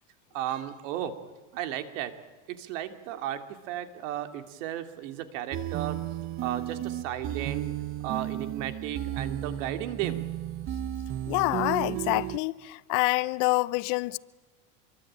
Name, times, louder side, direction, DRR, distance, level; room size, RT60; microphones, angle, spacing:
voice 1, 0.3-1.1 1.5-2.1 2.5-6.0 6.4-7.7 8.0-10.2, right 11 dB, 70° right, 2.9 m, -34 dB
sound 1, 5.5-12.4, right 12 dB, 35° right, 1.0 m, -34 dB
voice 2, 11.3-14.2, left 23 dB, 55° left, 0.8 m, -27 dB
26.5 x 23.5 x 9.0 m
supercardioid pair, 140°, 39 cm